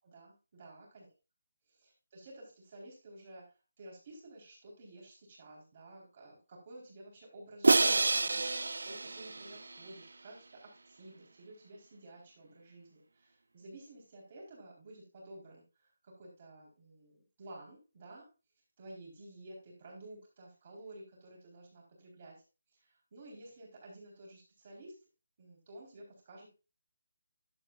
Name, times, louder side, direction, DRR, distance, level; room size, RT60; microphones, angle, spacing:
voice 1, 0.0-1.1 1.7-3.5 3.8-8.5 8.8-18.3 18.8-22.4 22.7-24.9 25.4-26.5, right 1 dB, 25° right, -2 dB, 4.1 m, -52 dB
Crash cymbal, 7.6-9.9, right 3 dB, 75° right, 0.5 m, -28 dB
11.0 x 8.8 x 2.5 m, 0.30 s
hypercardioid pair, 175°, 0 cm